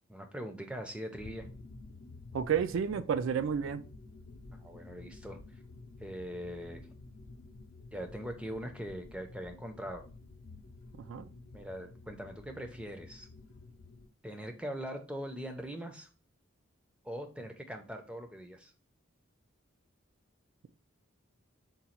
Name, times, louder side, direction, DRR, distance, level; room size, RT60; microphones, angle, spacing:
voice 1, 0.1-1.5 4.5-5.4 6.0-6.8 7.9-10.0 11.5-13.3 14.2-16.1 17.0-18.7, equal, 5° right, 0.4 m, -41 dB
sound 1, 1.1-14.1, left 3 dB, 70° left, 0.6 m, -51 dB
voice 2, 2.3-3.8 11.1-11.3, right 7 dB, 70° right, 0.3 m, -31 dB
3.9 x 2.3 x 4.3 m
head